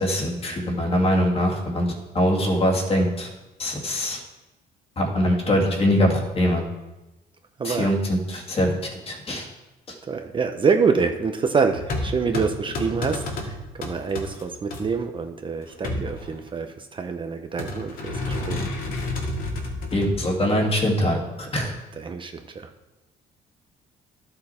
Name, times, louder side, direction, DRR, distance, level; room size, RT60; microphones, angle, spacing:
voice 1, 0.0-3.3 3.6-4.2 5.0-6.6 7.6-9.5 9.9-10.0 19.9-21.7, equal, 35° left, 0 dB, 2.3 m, -23 dB
voice 2, 7.6-8.0 10.1-18.7 22.0-22.7, right 5 dB, 30° right, 5 dB, 0.7 m, -26 dB
sound 1, 11.7-14.8 15.6-16.7 17.6-20.2, left 2 dB, 60° left, 2.2 m, -30 dB
12.0 x 6.7 x 4.3 m, 1.1 s
cardioid pair, 110°, 17 cm